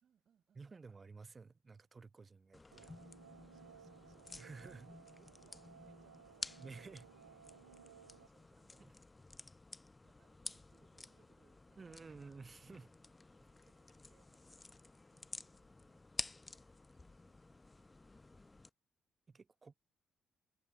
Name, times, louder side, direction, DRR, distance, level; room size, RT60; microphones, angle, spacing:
voice 1, 0.0-0.9 1.2-1.3 3.5-4.3 4.9-6.8 7.4-7.7 8.0-8.9 10.0-12.2 12.8-13.2 13.6-14.6 15.1-16.0 16.5-18.0, right 8 dB, 50° right, 3.1 m, -76 dB
voice 2, 0.5-2.9 4.4-4.9 6.5-7.1 8.8-8.9 11.8-12.9 13.4-13.5 19.3-19.7, right 4 dB, 30° right, 1.2 m, -53 dB
sound 1, 2.5-18.7, left 2 dB, 20° left, 0.7 m, -52 dB
sound 2, 2.7-8.3, right 9 dB, 80° right, 1.0 m, -60 dB
figure-of-eight pair, 40°, 0 cm